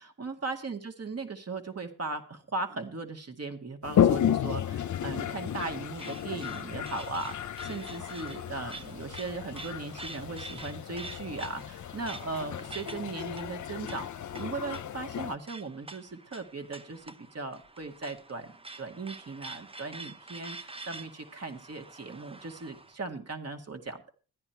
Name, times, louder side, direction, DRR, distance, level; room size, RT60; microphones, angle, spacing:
voice 1, 0.0-18.5 18.8-24.1, right 3 dB, 45° right, 6 dB, 2.1 m, -38 dB
Toilet flush, 3.8-15.3, left 9 dB, 55° left, 0.7 m, -32 dB
sound 1, 4.8-23.0, right 2 dB, 15° right, 0.8 m, -47 dB
13.5 x 10.0 x 4.5 m, 0.38 s
cardioid pair, 70°, 36 cm